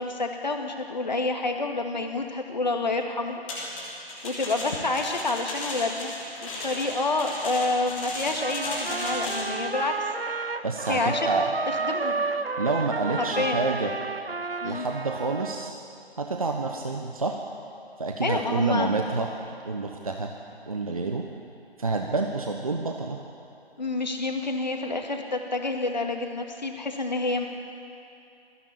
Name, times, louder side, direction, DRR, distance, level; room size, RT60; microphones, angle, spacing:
voice 1, 0.0-3.4 4.2-6.1 6.4-10.1 10.9-11.3 11.7-12.2 13.4-13.6 14.6-14.9 18.2-18.9 23.8-27.5, left 3 dB, 45° left, 3 dB, 2.2 m, -28 dB
sound 1, 3.5-9.5, left 1 dB, 10° left, 2.7 m, -35 dB
Trumpet, 8.4-15.7, right 4 dB, 65° right, 0.9 m, -31 dB
voice 2, 10.6-11.5 12.6-13.9 14.6-15.7 16.2-17.4 18.0-19.3 19.6-20.3 20.7-21.2 21.8-23.2, right 3 dB, 35° right, 3 dB, 1.1 m, -28 dB
21.0 x 15.5 x 8.7 m, 2.7 s
figure-of-eight pair, 155°, 32 cm